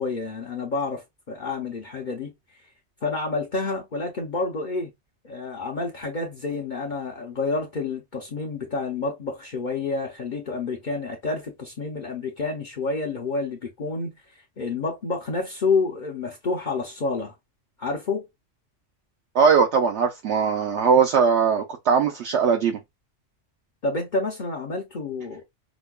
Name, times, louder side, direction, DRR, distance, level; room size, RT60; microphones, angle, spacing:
voice 1, 0.0-2.3 3.0-4.9 5.2-17.3 17.8-18.3 23.8-25.4, left 3 dB, 50° left, 0.7 m, -29 dB
voice 2, 19.3-22.8, right 6 dB, 70° right, 0.9 m, -20 dB
5.1 x 2.2 x 2.3 m
omnidirectional pair, 1.2 m